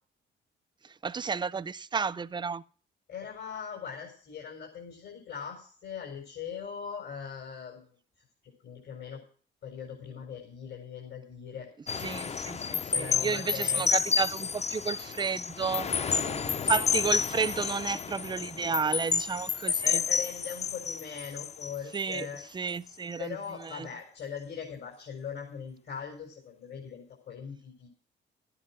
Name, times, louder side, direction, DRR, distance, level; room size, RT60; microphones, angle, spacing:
voice 1, 1.0-2.6 12.0-15.9 16.7-20.0 21.9-22.3 22.5-23.4 23.7-23.9, right 5 dB, 20° right, 0.5 m, -32 dB
voice 2, 3.1-7.9 8.6-9.2 9.6-11.7 12.9-13.8 16.0-16.6 19.8-22.4 23.2-27.9, left 7 dB, 65° left, 4.9 m, -40 dB
sound 1, 11.9-22.4 22.9-23.1, left 6 dB, 35° left, 0.6 m, -30 dB
14.0 x 10.0 x 5.9 m
cardioid pair, 90°, 20 cm